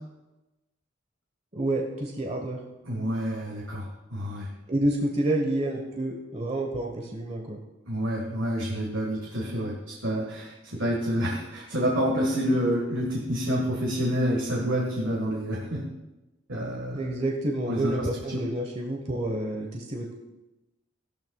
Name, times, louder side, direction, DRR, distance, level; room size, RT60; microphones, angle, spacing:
voice 1, 1.5-2.6 4.7-7.6 16.9-20.1, right 1 dB, 35° right, 1 dB, 1.1 m, -29 dB
voice 2, 2.9-4.5 7.9-15.8 16.5-17.1 17.7-18.4, equal, 85° right, -1 dB, 1.6 m, -28 dB
15.5 x 12.5 x 2.3 m, 1.0 s
head